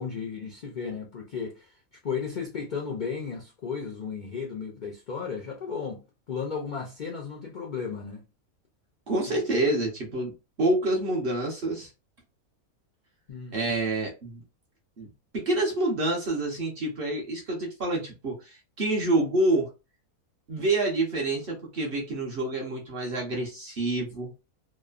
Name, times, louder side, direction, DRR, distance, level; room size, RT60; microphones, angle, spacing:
voice 1, 0.0-1.8 2.0-8.2 9.3-9.4 13.3-13.6, left 6 dB, 75° left, 0.4 m, -34 dB
voice 2, 9.1-10.3 10.6-11.9 13.5-14.4 15.0-19.7 20.5-24.3, right 2 dB, 50° right, 0.8 m, -27 dB
3.0 x 2.0 x 2.3 m
omnidirectional pair, 1.5 m